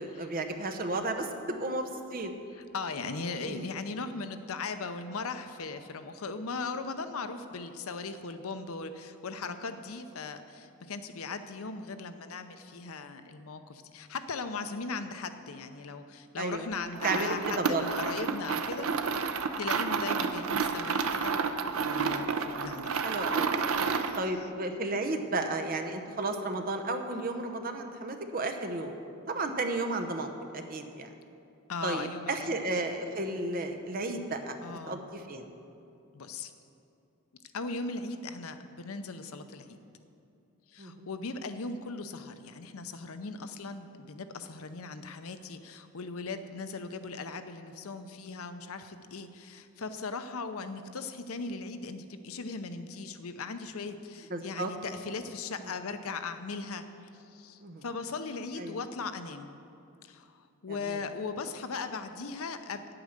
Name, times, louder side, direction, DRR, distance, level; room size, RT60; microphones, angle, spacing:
voice 1, 0.0-2.3 3.5-3.6 16.4-16.7 17.0-17.8 23.0-23.6 24.2-28.9 29.3-31.1 31.8-34.6 34.9-35.5 40.8-41.1 54.3-54.7 57.6-57.8 58.6-58.8 60.7-61.0, right 2 dB, 40° right, 6 dB, 0.8 m, -33 dB
voice 2, 2.5-19.3 19.6-23.0 23.7-24.2 31.7-32.5 34.6-35.0 36.1-36.5 37.5-39.8 40.7-56.8 57.3-59.5 60.0-62.9, left 4 dB, 80° left, 9 dB, 0.7 m, -38 dB
sound 1, 16.9-24.3, right 5 dB, 75° right, 0.6 m, -30 dB
9.2 x 8.7 x 6.5 m, 2.6 s
head